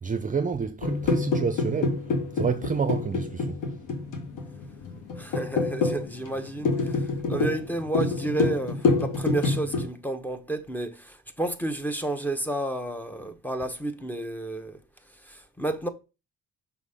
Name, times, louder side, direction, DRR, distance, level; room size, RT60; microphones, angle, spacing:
voice 1, 0.0-2.1 2.3-3.6, right 5 dB, 25° right, 0.7 m, -29 dB
sound 1, 0.8-9.8, left 3 dB, 90° left, 1.4 m, -27 dB
voice 2, 5.2-14.8 15.2-15.9, right 2 dB, 5° left, 1.0 m, -31 dB
5.8 x 4.0 x 5.0 m
cardioid pair, 90°, 30 cm